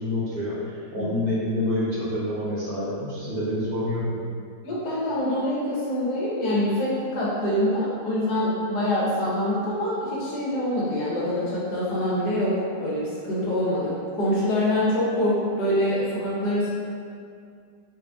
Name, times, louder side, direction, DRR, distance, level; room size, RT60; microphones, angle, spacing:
voice 1, 0.0-4.2, left 1 dB, 60° right, -8 dB, 1.3 m, -27 dB
voice 2, 4.6-16.7, left 1 dB, 70° left, -7 dB, 1.5 m, -25 dB
3.9 x 2.5 x 3.4 m, 2.3 s
omnidirectional pair, 1.8 m